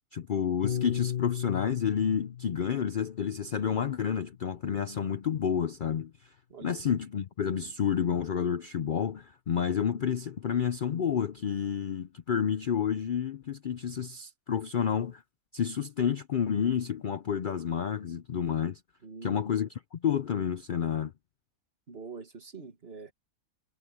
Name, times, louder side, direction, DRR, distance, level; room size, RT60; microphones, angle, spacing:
voice 1, 0.1-6.1 6.6-15.2 15.5-18.8 19.2-21.1, left 8 dB, 80° left, 0.4 m, -30 dB
Piano, 0.6-5.1, left 10 dB, 40° left, 1.2 m, -37 dB
voice 2, 6.5-6.8 19.0-19.6 21.9-23.1, right 4 dB, 40° right, 2.0 m, -44 dB
omnidirectional pair, 1.6 m